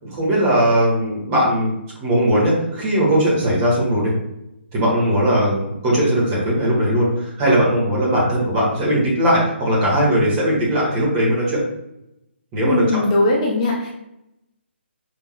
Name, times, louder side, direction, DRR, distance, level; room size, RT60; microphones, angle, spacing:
voice 1, 0.0-1.7 2.0-4.1 4.7-11.6 12.5-12.8, equal, 20° right, -5 dB, 1.5 m, -19 dB
voice 2, 12.6-13.9, left 2 dB, 25° left, -2 dB, 0.6 m, -19 dB
5.1 x 3.6 x 2.2 m, 0.85 s
figure-of-eight pair, 140°, 7 cm